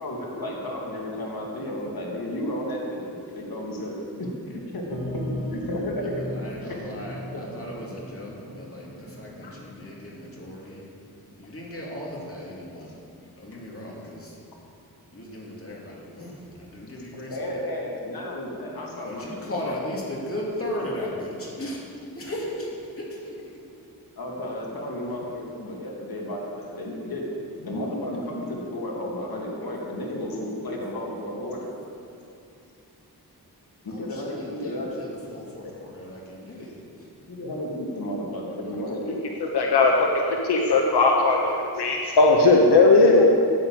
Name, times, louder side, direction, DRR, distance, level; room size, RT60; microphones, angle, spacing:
voice 1, 0.0-3.9 4.2-5.2 5.5-6.3 6.6-7.1 7.3-7.4 9.0-9.1 17.3-19.3 19.6-19.7 24.2-27.3 27.6-31.7 33.8-35.1 35.6-35.7 36.5-36.7 37.3-39.2, left 1 dB, 65° left, -2 dB, 2.5 m, -33 dB
sound 1, 4.9-10.4, equal, 60° right, 2.0 m, -38 dB
voice 2, 6.0-10.9 11.4-13.0 13.4-14.4 15.1-17.5 18.6-21.8 22.1-23.2 33.9-37.1, left 1 dB, 35° left, -4 dB, 2.8 m, -36 dB
voice 3, 39.4-40.1 40.5-43.3, left 3 dB, 90° left, 0 dB, 1.1 m, -18 dB
9.6 x 9.4 x 7.7 m, 2.6 s
wide cardioid pair, 120°, 38 cm